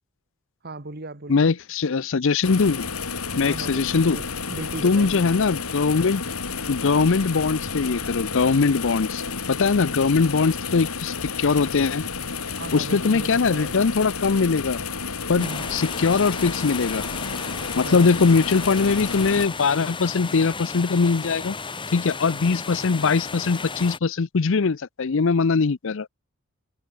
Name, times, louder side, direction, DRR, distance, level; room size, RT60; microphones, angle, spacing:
voice 1, 0.6-1.5 3.5-5.3 6.5-6.6 12.6-13.8 15.4-15.7 17.8-18.3, right 2 dB, 45° right, 1.8 m, -37 dB
voice 2, 1.3-2.8 3.4-4.2 4.8-6.2 6.7-12.0 12.7-14.8 15.3-17.0 17.8-21.6 21.9-26.1, left 4 dB, 60° left, 0.6 m, -21 dB
sound 1, 2.4-19.5, left 5 dB, 80° left, 3.0 m, -31 dB
sound 2, 15.4-24.0, left 4 dB, 20° left, 1.4 m, -34 dB
head